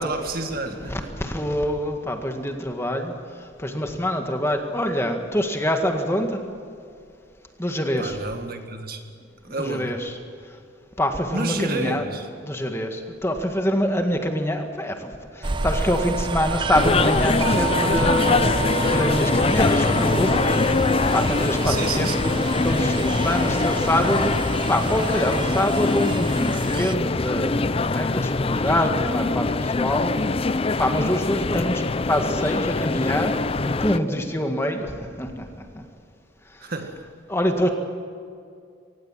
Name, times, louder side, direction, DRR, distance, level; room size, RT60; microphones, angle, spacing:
voice 1, 0.0-1.1 8.0-9.0 9.4-9.9 11.3-12.3 21.6-22.2 36.6-37.1, right 2 dB, 50° right, 1.9 m, -30 dB
voice 2, 0.6-3.1 3.6-6.4 7.6-8.2 9.6-10.1 11.0-12.1 12.4-15.1 15.6-18.4 18.8-20.3 21.1-22.3 22.6-24.3 24.7-29.5 29.8-30.1 30.8-33.3 33.6-35.4 37.3-37.7, left 1 dB, 15° left, 1.9 m, -25 dB
sound 1, 15.4-26.9, right 4 dB, 25° right, 0.6 m, -29 dB
sound 2, 16.7-34.0, left 3 dB, 30° left, 0.5 m, -23 dB
24.5 x 18.5 x 7.5 m
head